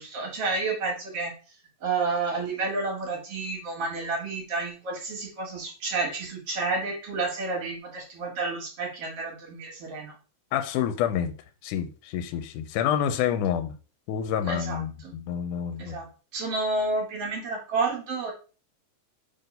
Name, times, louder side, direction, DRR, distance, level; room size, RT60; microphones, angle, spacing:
voice 1, 0.0-1.3 1.8-10.1 14.4-15.1 15.8-16.1 16.3-18.3, right 3 dB, 55° right, 2.3 m, -30 dB
voice 2, 10.5-11.3 11.6-13.7 14.1-16.0, left 9 dB, 80° left, 2.1 m, -28 dB
4.7 x 3.9 x 5.3 m
omnidirectional pair, 3.6 m